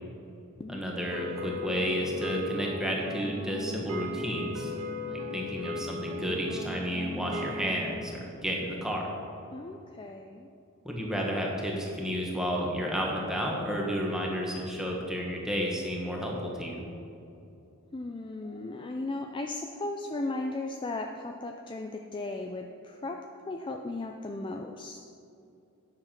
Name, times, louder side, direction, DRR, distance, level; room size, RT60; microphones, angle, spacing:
voice 1, 0.7-4.7 5.1-9.1 10.8-16.8, equal, 5° right, -2 dB, 1.5 m, -31 dB
sound 1, 1.1-7.8, left 2 dB, 80° right, 1.3 m, -37 dB
voice 2, 9.5-10.5 17.9-25.0, left 2 dB, 20° left, 4 dB, 0.4 m, -36 dB
9.7 x 7.1 x 5.9 m, 2.7 s
head